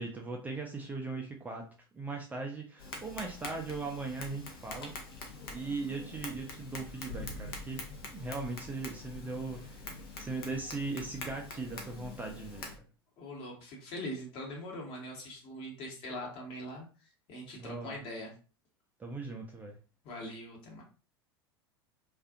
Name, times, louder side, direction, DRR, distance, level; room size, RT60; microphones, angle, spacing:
voice 1, 0.0-1.7 1.9-4.9 5.5-7.8 8.1-9.9 10.2-12.7 17.6-18.0 19.0-19.7, right 3 dB, 10° right, 1 dB, 0.4 m, -39 dB
Tap, 2.8-12.8, left 3 dB, 65° left, 0.7 m, -44 dB
voice 2, 13.2-18.3 20.0-20.8, left 1 dB, 45° left, -1 dB, 1.1 m, -42 dB
2.4 x 2.4 x 2.4 m, 0.35 s
figure-of-eight pair, 80°, 13 cm